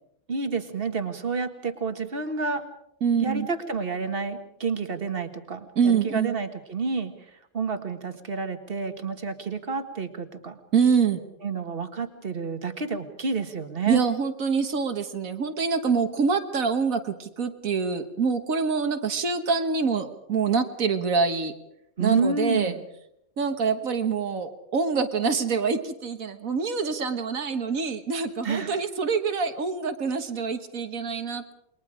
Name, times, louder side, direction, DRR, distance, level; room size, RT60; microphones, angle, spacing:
voice 1, 0.3-2.7 3.1-7.1 7.5-10.6 11.4-14.0 22.0-22.8 28.4-28.8, right 4 dB, 40° right, 8 dB, 1.9 m, -29 dB
voice 2, 3.0-3.5 5.8-6.4 10.7-11.2 13.9-21.5 22.0-22.7 23.4-31.5, right 5 dB, 70° right, 8 dB, 1.8 m, -25 dB
28.5 x 22.0 x 5.0 m, 0.76 s
omnidirectional pair, 1.5 m